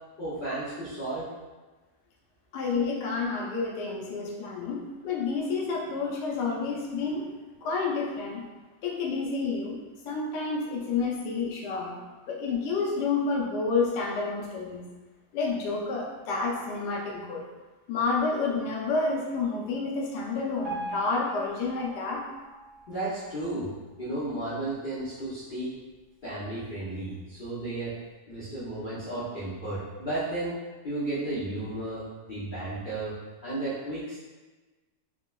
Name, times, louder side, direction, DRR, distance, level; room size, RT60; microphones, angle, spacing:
voice 1, 0.2-1.3 22.9-23.7 24.0-25.7 26.2-27.9 28.3-30.6 30.8-33.1 33.4-34.2, right 2 dB, 60° left, -11 dB, 0.5 m, -33 dB
voice 2, 2.5-7.3 7.6-8.4 8.8-9.8 10.1-12.0 12.3-14.8 15.3-17.4 17.9-22.2, left 4 dB, 90° left, -2 dB, 1.2 m, -29 dB
Piano, 20.6-23.7 24.3-24.4 24.7-24.8 25.5-25.6 26.2-26.3, right 1 dB, 65° right, 1.5 m, -41 dB
3.6 x 2.0 x 2.2 m, 1.2 s
omnidirectional pair, 1.7 m